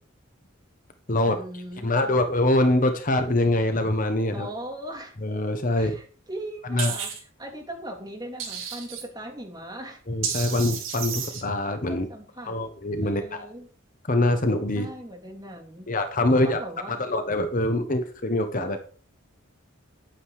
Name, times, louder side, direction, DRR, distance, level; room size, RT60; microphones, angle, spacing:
voice 1, 1.2-2.3 4.3-5.2 5.8-10.0 11.9-12.6 13.0-13.7 14.7-15.9 16.3-17.0 18.5-18.8, right 1 dB, 20° right, 1 dB, 2.8 m, -39 dB
voice 2, 1.8-4.5 5.2-6.0 6.7-6.9 10.1-12.1 12.5-13.5 14.1-14.9 15.9-16.6 16.9-18.8, left 1 dB, 40° left, 7 dB, 1.1 m, -24 dB
sound 1, 6.8-7.2 8.4-9.0 10.2-11.4, right 7 dB, 70° right, 4.0 m, -31 dB
9.8 x 8.9 x 4.9 m, 0.40 s
head